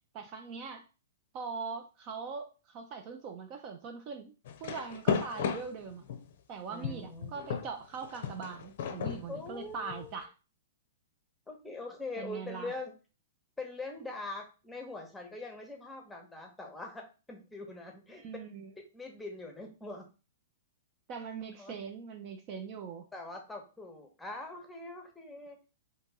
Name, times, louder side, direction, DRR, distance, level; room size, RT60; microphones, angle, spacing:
voice 1, 0.1-0.8 1.3-4.3 4.6-6.0 6.5-10.3 12.2-12.7 18.1-18.7 21.1-23.1, right 5 dB, 40° right, 6 dB, 0.5 m, -41 dB
sound 1, 4.4-6.3 6.8-10.1, left 7 dB, 60° left, 0.5 m, -35 dB
voice 2, 6.7-7.3 9.3-10.1 11.5-12.9 13.6-18.2 18.8-20.1 21.6-21.7 23.1-25.6, left 2 dB, 5° left, 3 dB, 0.9 m, -43 dB
2.9 x 2.8 x 3.6 m, 0.32 s
hypercardioid pair, 125°, 0 cm